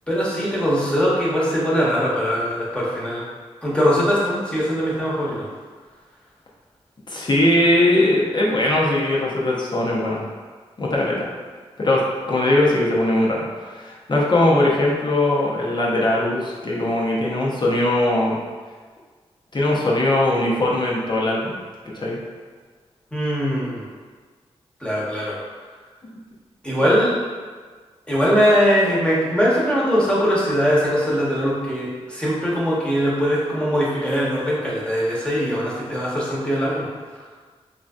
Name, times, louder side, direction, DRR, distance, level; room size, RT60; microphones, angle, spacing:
voice 1, 0.1-3.2 3.6-5.3 23.1-23.9 24.8-25.3 26.6-27.2 28.1-36.9, equal, 10° left, -7 dB, 1.0 m, -21 dB
voice 2, 7.1-10.2 10.8-11.3 11.8-12.0 12.3-18.4 19.5-21.6 21.9-22.2, left 1 dB, 40° left, -4 dB, 0.6 m, -20 dB
3.1 x 2.6 x 2.3 m, 1.5 s
cardioid pair, 50°, 11 cm